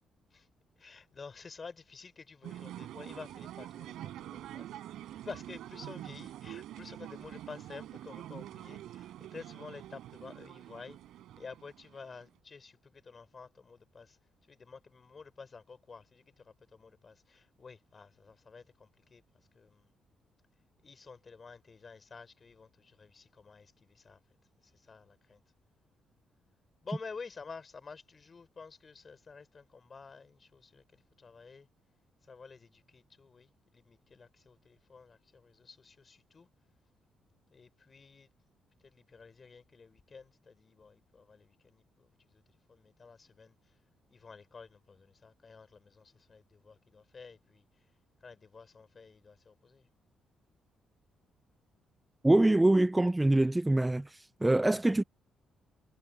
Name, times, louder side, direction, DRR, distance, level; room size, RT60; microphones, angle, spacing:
voice 1, 0.8-4.7 5.0-11.0 11.4-14.2 14.5-19.2 19.5-19.9 20.8-24.2 24.6-25.4 26.8-31.7 32.2-36.5 37.5-38.3 38.8-43.7 44.1-47.9 48.2-49.9, left 5 dB, 30° left, 6.1 m, -51 dB
sound 1, 2.4-12.3, right 13 dB, 85° right, 5.8 m, -46 dB
voice 2, 52.2-55.0, right 1 dB, 10° right, 0.4 m, -25 dB
cardioid pair, 120°, 0 cm